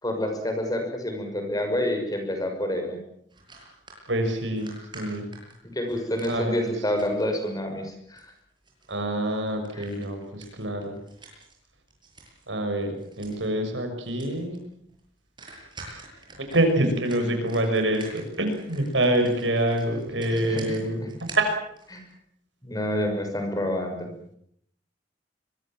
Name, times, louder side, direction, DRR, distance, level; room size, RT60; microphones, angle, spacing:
voice 1, 0.0-3.0 5.7-8.3 9.7-9.9 20.2-20.7 21.0-21.1 21.9-22.0 22.6-24.1, left 1 dB, 20° left, 5 dB, 6.2 m, -28 dB
sound 1, 3.3-7.5 7.9-12.5 12.8-13.5 13.7-13.8 14.0-14.6 14.9-15.0 15.4-22.1, right 3 dB, 25° right, 8.0 m, -47 dB
voice 2, 4.1-5.3 6.3-6.7 8.9-10.9 12.5-14.6 16.5-21.0 21.3-21.5, right 1 dB, 85° right, 6 dB, 6.5 m, -26 dB
24.5 x 23.0 x 7.6 m, 0.70 s
head